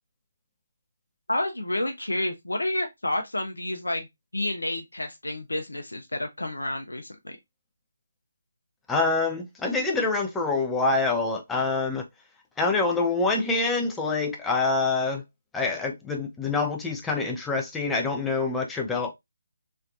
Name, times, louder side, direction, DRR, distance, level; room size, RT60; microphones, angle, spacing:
voice 1, 1.3-4.1 4.3-7.3, left 1 dB, 75° left, 0.6 m, -30 dB
voice 2, 8.9-12.0 12.6-15.2 15.5-19.1, left 3 dB, 5° left, 0.5 m, -26 dB
3.1 x 2.6 x 2.5 m
figure-of-eight pair, 145°, 0 cm